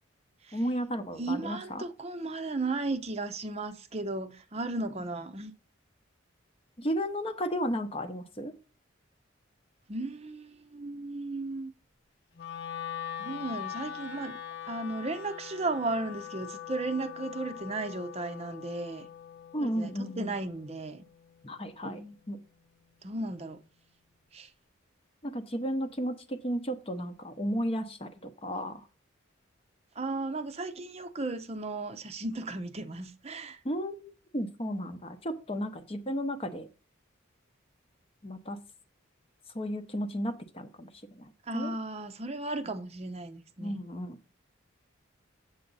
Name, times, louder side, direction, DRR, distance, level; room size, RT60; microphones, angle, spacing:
voice 1, 0.5-1.8 6.8-8.5 19.5-20.4 21.4-22.0 22.3-22.4 25.2-28.8 33.6-36.7 38.2-38.6 39.5-40.9 41.2-41.7 43.6-44.2, equal, 30° left, 0.8 m, -34 dB
voice 2, 1.2-5.5 9.9-11.7 13.2-14.4 14.7-19.1 19.6-21.0 21.8-22.2 23.0-23.6 24.3-24.5 30.0-33.6 41.5-43.8, right 2 dB, 30° right, 0.6 m, -35 dB
Wind instrument woodwind instrument, 12.3-22.5, left 10 dB, 55° left, 0.9 m, -43 dB
7.9 x 7.3 x 4.0 m
head